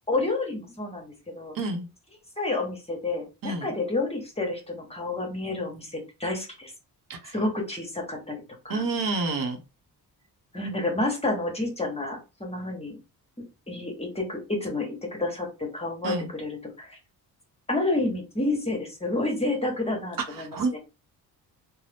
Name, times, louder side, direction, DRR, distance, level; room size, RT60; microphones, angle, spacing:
voice 1, 0.1-1.5 2.4-6.7 7.3-8.8 10.5-13.0 13.7-17.0 17.7-20.6, left 2 dB, 15° left, 1 dB, 1.0 m, -29 dB
voice 2, 1.5-1.9 3.4-3.7 7.1-7.3 8.7-9.6 16.0-16.3 20.3-20.8, right 3 dB, 60° right, 4 dB, 0.8 m, -29 dB
2.6 x 2.0 x 3.3 m, 0.29 s
cardioid pair, 90°, 38 cm